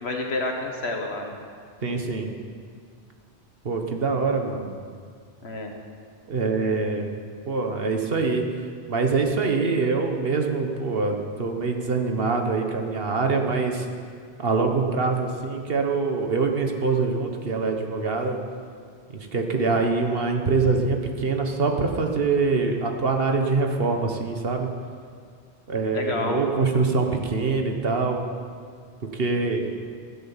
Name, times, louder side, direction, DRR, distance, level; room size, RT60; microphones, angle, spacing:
voice 1, 0.0-1.4 5.4-5.7 25.9-26.4, left 2 dB, 80° left, 2 dB, 1.8 m, -29 dB
voice 2, 1.8-2.3 3.6-4.7 6.3-7.1 7.5-8.4 8.9-13.8 14.4-18.4 19.3-24.7 25.7-28.2 29.2-29.7, right 4 dB, 65° right, 3 dB, 1.5 m, -24 dB
15.5 x 7.8 x 7.3 m, 2.1 s
omnidirectional pair, 1.1 m